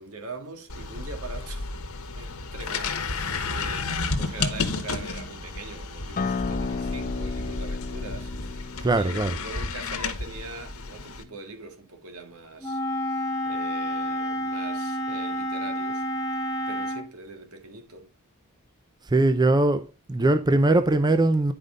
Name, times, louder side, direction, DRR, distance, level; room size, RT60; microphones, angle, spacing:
voice 1, 0.0-1.7 2.2-12.8 13.1-16.1 16.7-18.1, right 3 dB, 70° right, 1.7 m, -42 dB
sound 1, 0.7-11.2, left 3 dB, 75° left, 1.3 m, -32 dB
Acoustic guitar, 6.2-11.4, left 4 dB, 35° left, 0.5 m, -34 dB
voice 2, 8.8-9.3 19.1-21.5, right 2 dB, 20° right, 0.4 m, -21 dB
Wind instrument woodwind instrument, 12.6-17.1, equal, 15° left, 1.3 m, -29 dB
10.0 x 5.2 x 3.7 m
head